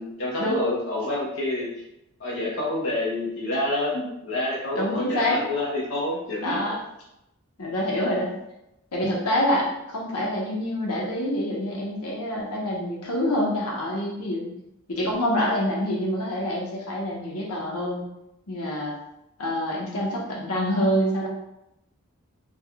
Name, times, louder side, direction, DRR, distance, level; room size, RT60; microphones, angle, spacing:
voice 1, 0.0-1.8 2.2-6.6, left 1 dB, 60° left, -5 dB, 0.8 m, -28 dB
voice 2, 4.7-5.4 6.4-6.8 7.6-8.3 8.9-14.5 14.9-18.0 18.5-18.9 19.4-21.3, equal, 90° left, -3 dB, 0.9 m, -26 dB
3.4 x 2.2 x 3.5 m, 0.86 s
head